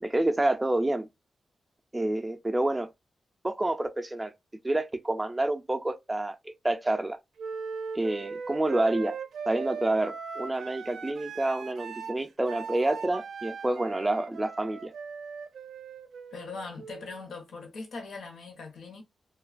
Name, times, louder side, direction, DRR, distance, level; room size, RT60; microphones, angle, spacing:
voice 1, 0.0-1.1 1.9-2.9 3.4-4.3 4.6-7.2 7.9-9.2 9.5-14.9, right 1 dB, 15° right, 0.3 m, -28 dB
Wind instrument woodwind instrument, 7.4-17.2, right 6 dB, 90° right, 0.4 m, -39 dB
voice 2, 16.3-19.0, left 4 dB, 85° left, 0.8 m, -41 dB
2.7 x 2.2 x 2.4 m
wide cardioid pair, 170°, 0 cm